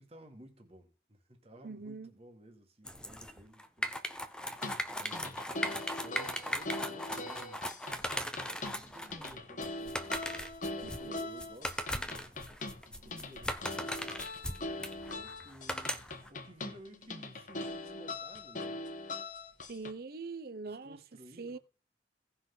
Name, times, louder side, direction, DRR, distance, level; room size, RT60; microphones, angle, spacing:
voice 1, 0.0-4.7 5.0-5.4 6.0-7.7 8.4-12.3 12.9-14.2 15.1-16.0 16.3-18.8 20.7-21.6, right 1 dB, 35° right, 1.9 m, -55 dB
voice 2, 1.6-2.1 10.8-11.3 19.7-21.0 21.4-21.6, right 4 dB, 55° right, 0.6 m, -43 dB
sound 1, 2.9-16.3, equal, 5° left, 0.7 m, -38 dB
sound 2, 4.5-19.9, left 2 dB, 45° left, 1.2 m, -42 dB
17.0 x 5.8 x 3.9 m
head